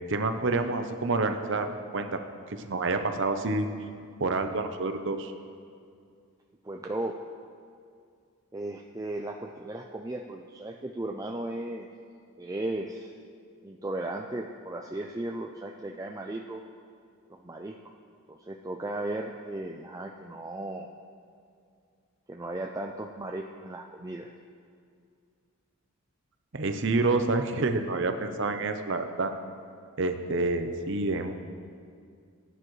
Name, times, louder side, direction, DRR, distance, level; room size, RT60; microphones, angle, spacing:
voice 1, 0.1-2.2 2.5-3.7 4.2-5.3 26.5-29.3 30.0-31.4, right 3 dB, 55° right, 7 dB, 0.8 m, -28 dB
voice 2, 6.6-7.2 8.5-11.9 12.4-13.1 13.6-16.6 17.3-17.7 18.3-20.9 22.3-24.3, right 1 dB, 15° right, 1 dB, 0.4 m, -36 dB
18.0 x 10.0 x 3.2 m, 2.3 s
head